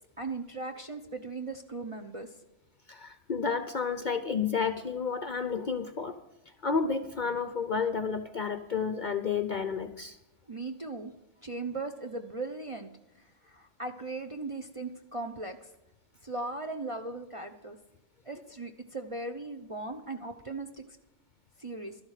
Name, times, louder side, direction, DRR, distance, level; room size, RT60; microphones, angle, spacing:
voice 1, 0.2-2.3 10.5-11.1 11.4-12.9 13.4-15.7 16.2-17.8 18.2-20.7 21.6-22.0, right 3 dB, 35° right, 3 dB, 0.6 m, -38 dB
voice 2, 2.9-6.2 6.6-10.2, left 5 dB, 50° left, 9 dB, 0.6 m, -31 dB
12.5 x 11.5 x 4.9 m, 0.96 s
omnidirectional pair, 1.3 m